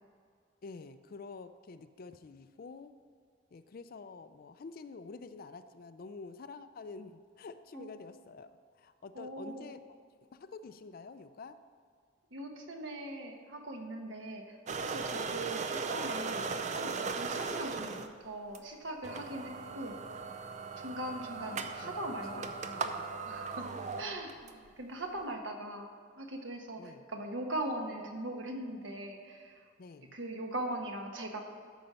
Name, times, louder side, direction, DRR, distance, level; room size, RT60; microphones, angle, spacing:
voice 1, 0.6-2.9 3.5-8.5 8.8-9.8 10.3-11.6 15.3-15.5 17.9-18.1 21.4-23.1 23.8-24.3 26.8-27.1 29.8-30.2, left 4 dB, 50° left, 11 dB, 0.4 m, -48 dB
voice 2, 9.1-9.7 12.3-14.6 14.8-16.4 16.7-20.0 20.8-22.8 23.3-29.7 30.1-31.4, right 1 dB, 75° right, 3 dB, 1.2 m, -40 dB
sound 1, 14.7-18.1 18.5-18.6 19.0-24.5, right 4 dB, 40° right, 0.5 m, -38 dB
13.0 x 5.2 x 5.6 m, 2.1 s
head